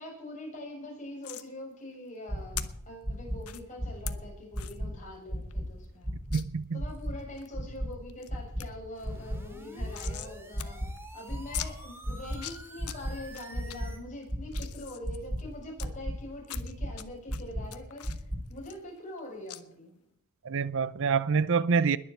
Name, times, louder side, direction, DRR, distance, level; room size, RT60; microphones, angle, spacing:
voice 1, 0.0-6.2 6.7-10.8 11.1-20.0, left 1 dB, 35° left, 7.3 m, -44 dB
sound 1, 1.2-1.5 2.6-2.7 3.4-3.6 4.1-4.2 4.6-4.8 5.2-5.3 5.5-5.6 6.3-6.4 6.9-7.5 7.9-8.3 8.6-8.7 9.0-10.3 10.6-10.7 11.0-11.1 11.5-11.7 12.2-13.0 13.3-13.8 14.2-15.9 16.4-17.0 17.3-19.2 19.5-19.6, left 13 dB, 80° left, 1.1 m, -41 dB
sound 2, 2.3-2.6 3.0-3.4 3.8-4.1 4.5-4.9 5.3-5.6 6.0-6.4 6.8-7.1 7.5-7.9 8.3-8.6 9.0-9.4 9.8-10.1 10.5-10.9 11.3-11.6 12.0-12.4 12.8-13.1 13.5-13.9 14.3-14.6 15.0-15.4 15.8-16.1 16.5-16.9 17.3-17.6 18.0-18.4, equal, 30° right, 3.7 m, -33 dB
voice 2, 6.3-6.8 20.4-22.0, right 5 dB, 60° right, 0.6 m, -26 dB
sound 3, 9.0-14.0, right 1 dB, 10° right, 2.4 m, -49 dB
21.0 x 7.5 x 7.8 m
head